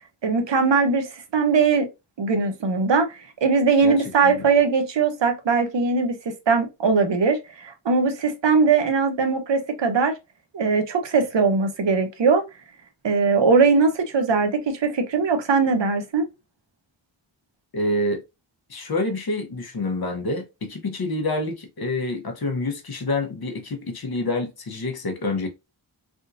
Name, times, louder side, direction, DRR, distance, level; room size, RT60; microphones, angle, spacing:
voice 1, 0.2-1.9 2.2-10.1 10.5-12.4 13.0-16.3, right 4 dB, 75° right, 0.8 m, -20 dB
voice 2, 17.7-18.2 18.7-25.5, left 2 dB, 55° left, 0.9 m, -27 dB
3.5 x 2.6 x 2.5 m
wide cardioid pair, 95°, 44 cm